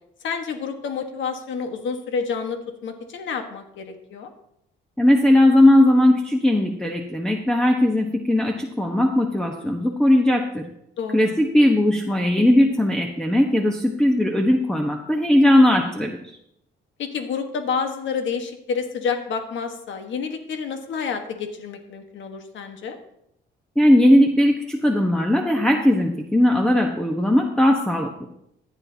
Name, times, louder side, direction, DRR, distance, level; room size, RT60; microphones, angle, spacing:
voice 1, 0.2-4.3 11.0-11.3 17.0-23.0, left 6 dB, 70° left, 5 dB, 1.4 m, -29 dB
voice 2, 5.0-10.7 11.1-16.3 23.8-28.2, left 1 dB, 5° left, 2 dB, 1.1 m, -18 dB
14.5 x 10.0 x 2.8 m, 0.77 s
cardioid pair, 90°, 20 cm